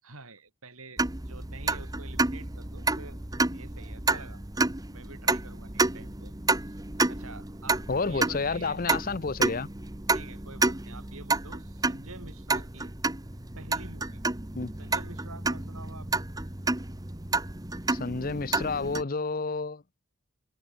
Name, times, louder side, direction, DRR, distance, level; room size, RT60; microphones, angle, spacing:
voice 1, 0.0-3.2 3.5-4.4 4.9-6.3 6.6-8.8 10.1-12.9 13.6-14.2 14.8-16.3, right 3 dB, 75° right, 7.2 m, -47 dB
sound 1, 1.0-19.0, right 3 dB, 15° right, 1.2 m, -30 dB
voice 2, 7.9-9.7 14.5-14.7 17.9-19.8, left 4 dB, 40° left, 0.7 m, -30 dB
head